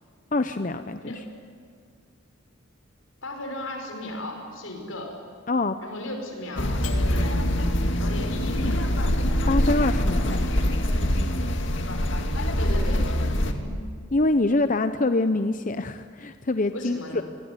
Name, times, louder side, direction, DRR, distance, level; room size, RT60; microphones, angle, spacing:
voice 1, 0.3-1.1 5.5-5.8 9.5-10.7 14.1-17.2, left 2 dB, 40° left, 10 dB, 0.7 m, -25 dB
voice 2, 3.2-5.1 5.8-7.5 8.0-8.8 12.6-13.1 13.5-13.8 16.7-17.2, left 1 dB, 80° left, 3 dB, 5.9 m, -36 dB
sound 1, 6.6-13.5, equal, 65° left, 2.2 m, -24 dB
26.5 x 21.0 x 9.9 m, 2.2 s
head